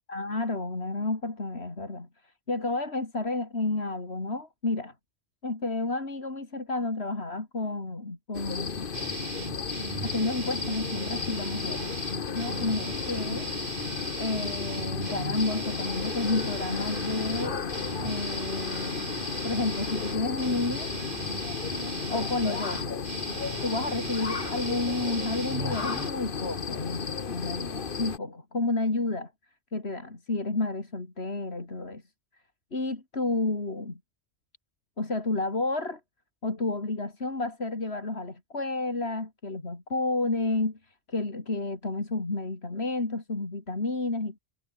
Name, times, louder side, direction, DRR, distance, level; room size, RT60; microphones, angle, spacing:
voice 1, 0.1-4.9 5.4-8.9 10.0-11.9 12.3-13.5 14.2-17.6 18.0-19.1 19.4-20.9 22.1-22.9 23.6-29.3 29.7-32.0 32.7-34.0 35.0-36.0 36.4-44.4, left 2 dB, 70° left, 3.7 m, -31 dB
sound 1, 8.3-28.2, left 5 dB, 55° left, 1.4 m, -34 dB
sound 2, 8.9-26.1, right 3 dB, 40° right, 2.1 m, -38 dB
omnidirectional pair, 1.1 m